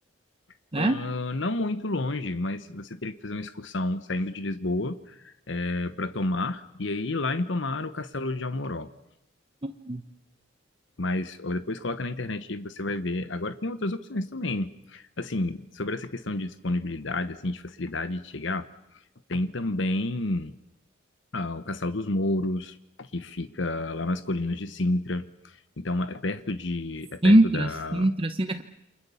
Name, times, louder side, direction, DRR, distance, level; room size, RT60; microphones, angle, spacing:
voice 1, 0.8-8.9 11.0-18.7 19.3-20.5 21.3-28.1, left 2 dB, 70° left, 12 dB, 1.1 m, -30 dB
voice 2, 9.6-10.0 27.2-28.6, right 1 dB, 30° right, 8 dB, 1.0 m, -22 dB
29.0 x 25.0 x 7.1 m, 0.83 s
head